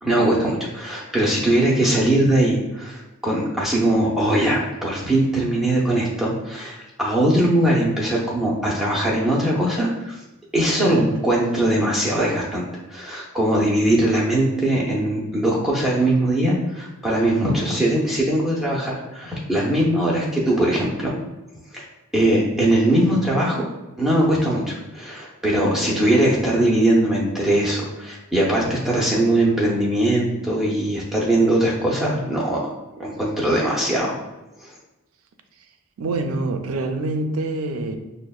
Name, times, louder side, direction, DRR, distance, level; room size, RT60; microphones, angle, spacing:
voice 1, 0.0-10.2 10.5-21.2 21.7-21.8 22.1-23.7 24.0-32.7 33.0-34.2 34.6-34.7, right 1 dB, ahead, -5 dB, 0.4 m, -21 dB
voice 2, 25.7-26.2 36.0-38.0, right 2 dB, 75° right, 6 dB, 0.4 m, -26 dB
6.0 x 2.0 x 2.3 m, 1.0 s
head